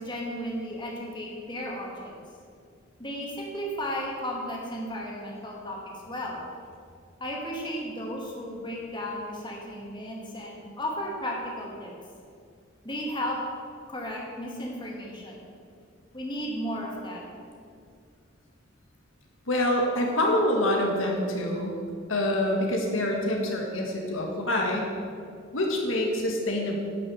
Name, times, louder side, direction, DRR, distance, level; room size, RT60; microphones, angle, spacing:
voice 1, 0.0-2.1 3.0-5.8 6.1-6.4 7.2-11.9 12.8-13.4 13.9-15.4 16.1-17.2 20.1-20.2, equal, 25° left, -2 dB, 2.2 m, -34 dB
voice 2, 19.5-21.8 22.1-24.9 25.5-26.8, left 1 dB, 80° left, 0 dB, 1.9 m, -26 dB
11.0 x 6.7 x 8.0 m, 2.3 s
head